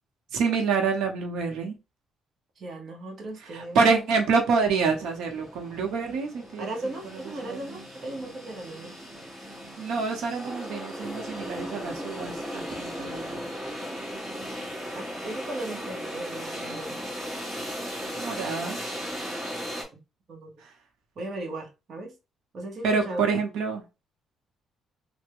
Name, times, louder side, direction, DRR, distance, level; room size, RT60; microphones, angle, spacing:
voice 1, 0.3-1.7 3.5-6.7 7.4-7.6 9.8-13.4 18.1-18.8 22.8-23.8, right 5 dB, 85° right, 0.8 m, -27 dB
voice 2, 2.6-4.0 6.6-8.9 14.9-17.0 19.9-20.0 20.3-20.6 21.2-22.1 22.5-23.3, right 2 dB, 45° right, 0.9 m, -37 dB
sound 1, 3.9-4.0 4.2-19.8, equal, 10° right, 1.7 m, -37 dB
3.3 x 2.1 x 3.4 m
cardioid pair, 135°, 0 cm